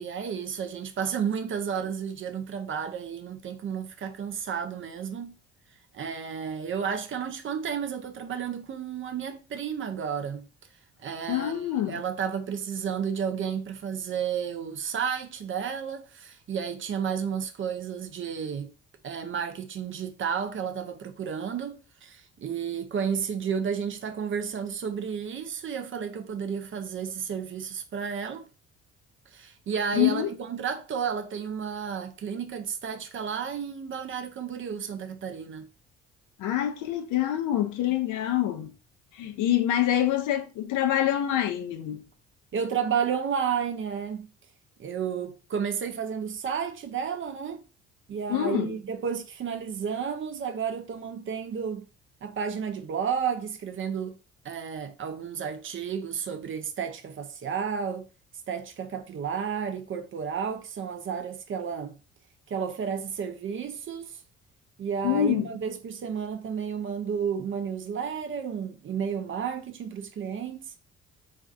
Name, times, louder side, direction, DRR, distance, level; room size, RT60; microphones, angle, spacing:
voice 1, 0.0-5.4 5.9-10.5 11.0-18.7 19.0-28.5 29.3-35.7 42.5-44.3 44.8-47.6 48.1-51.8 52.2-54.2 54.4-58.1 58.5-62.0 62.5-64.2 64.8-70.7, right 7 dB, 40° right, 0.5 m, -32 dB
voice 2, 11.3-12.0 29.9-30.3 36.4-38.7 39.1-42.0 48.3-48.8 65.0-65.5, left 12 dB, 65° left, 0.5 m, -26 dB
2.4 x 2.3 x 2.5 m
hypercardioid pair, 55°, 33 cm